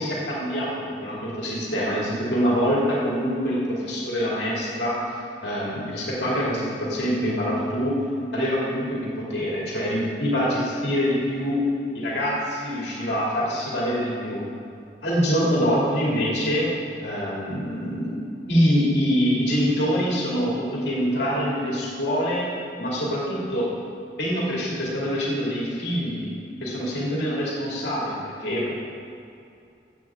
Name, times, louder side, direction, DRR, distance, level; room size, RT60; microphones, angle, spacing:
voice 1, 0.0-5.0 5.4-8.0 8.3-11.6 11.9-14.4 15.0-16.7 17.0-18.2 18.5-22.5 22.8-23.7 24.2-26.3 26.6-28.7, equal, 70° left, -5 dB, 2.5 m, -25 dB
14.5 x 7.8 x 3.7 m, 2.6 s
head